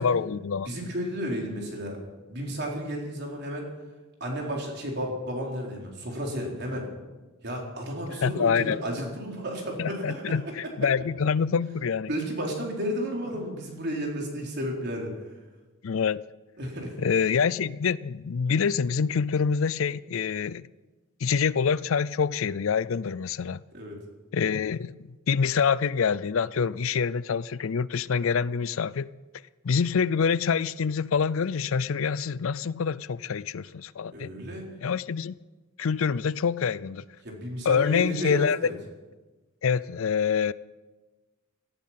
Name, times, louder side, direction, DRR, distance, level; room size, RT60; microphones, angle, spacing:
voice 1, 0.0-0.7 8.1-8.8 9.8-12.1 13.3-13.4 15.8-16.2 17.0-20.7 21.2-23.6 24.3-29.1 29.6-34.3 34.8-35.4 35.8-37.0 37.6-38.6 39.6-40.5, left 6 dB, 65° left, 19 dB, 0.4 m, -26 dB
voice 2, 0.6-2.0 2.3-3.7 4.2-6.9 7.4-10.4 12.1-15.1 16.6-17.0 23.7-24.0 34.1-34.6 37.2-38.7, equal, 50° right, 0 dB, 4.2 m, -32 dB
17.5 x 14.0 x 5.9 m, 1.2 s
head